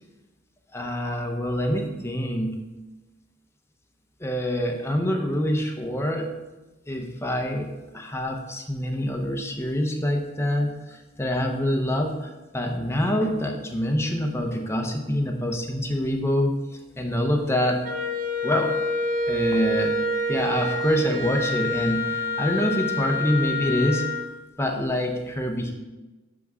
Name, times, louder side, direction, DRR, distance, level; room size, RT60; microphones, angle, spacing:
voice 1, 0.7-2.5 4.2-6.3 6.9-16.5 17.0-17.9 18.4-18.7 19.3-20.0 20.3-24.0 24.6-25.7, equal, 15° left, 3 dB, 0.7 m, -26 dB
Wind instrument woodwind instrument, 17.8-24.3, left 1 dB, 45° right, 0.7 m, -27 dB
6.0 x 5.9 x 6.2 m, 1.1 s
head